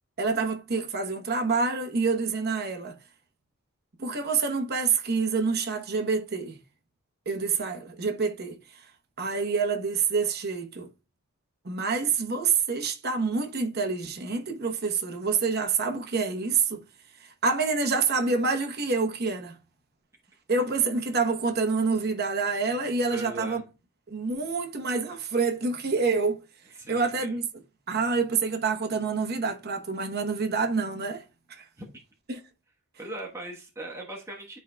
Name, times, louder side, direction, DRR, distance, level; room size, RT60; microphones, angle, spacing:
voice 1, 0.2-3.0 4.0-6.6 7.3-8.6 9.2-10.9 11.6-16.8 17.4-19.5 20.5-23.6 24.1-26.4 26.9-27.5 27.9-31.2 31.5-31.6 32.3-32.4, right 4 dB, 45° right, 1.0 m, -27 dB
voice 2, 23.1-23.6 26.8-27.4 31.8-31.9 33.0-34.6, right 2 dB, 15° right, 1.2 m, -39 dB
11.0 x 4.7 x 2.3 m
head